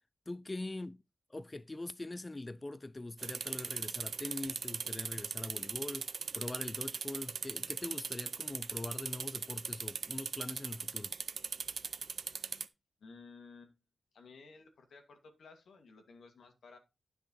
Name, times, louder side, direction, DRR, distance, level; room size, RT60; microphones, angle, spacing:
voice 1, 0.3-1.0 1.3-11.2, left 2 dB, 25° left, 0.4 m, -43 dB
sound 1, 3.2-12.7, right 6 dB, 70° right, 0.7 m, -39 dB
voice 2, 12.0-12.6 13.0-13.7 14.1-16.8, left 4 dB, 85° left, 2.1 m, -56 dB
10.0 x 5.9 x 4.2 m
cardioid pair, 85°, 0 cm